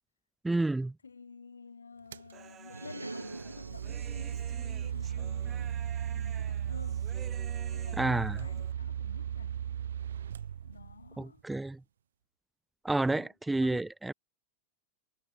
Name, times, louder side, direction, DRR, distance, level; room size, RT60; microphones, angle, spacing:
voice 1, 0.4-0.9 8.0-8.4 11.2-11.8 12.8-14.1, right 2 dB, 5° right, 0.4 m, -30 dB
voice 2, 1.0-5.8 6.1-7.1 7.7-9.6 10.6-11.4 13.1-13.3 13.6-13.9, left 5 dB, 75° left, 2.4 m, -51 dB
sound 1, 2.1-2.3 3.2-11.2, right 9 dB, 65° right, 0.6 m, -36 dB
Human voice, 2.3-8.7, right 9 dB, 25° right, 1.5 m, -52 dB
sound 2, 2.6-4.3, right 3 dB, 80° right, 1.6 m, -43 dB
figure-of-eight pair, 90°, 0 cm